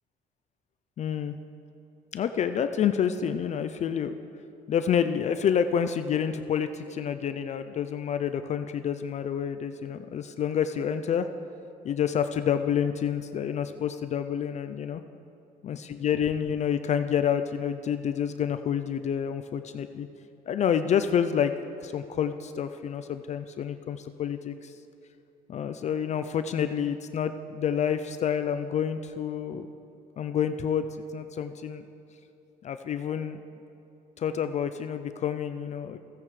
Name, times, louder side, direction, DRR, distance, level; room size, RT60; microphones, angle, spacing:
voice 1, 1.0-1.3 2.1-4.1 4.7-11.3 11.8-15.0 15.6-20.1 20.5-21.5 21.8-24.7 25.5-29.7 30.2-30.8 31.1-31.8 32.6-33.4 34.2-36.0, left 8 dB, 45° left, 10 dB, 0.4 m, -28 dB
15.5 x 8.8 x 3.2 m, 2.8 s
cardioid pair, 110°, 17 cm